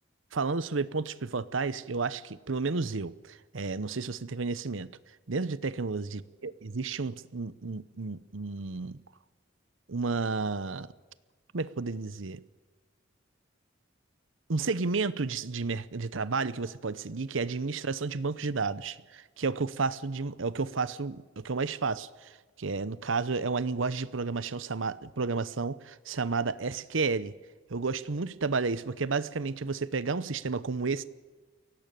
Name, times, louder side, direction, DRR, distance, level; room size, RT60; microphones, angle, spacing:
voice 1, 0.3-4.9 5.3-9.0 9.9-10.9 11.5-12.4 14.5-22.3 22.6-27.3 27.7-31.0, right 4 dB, 75° right, 0.8 m, -31 dB
23.0 x 17.5 x 9.1 m
head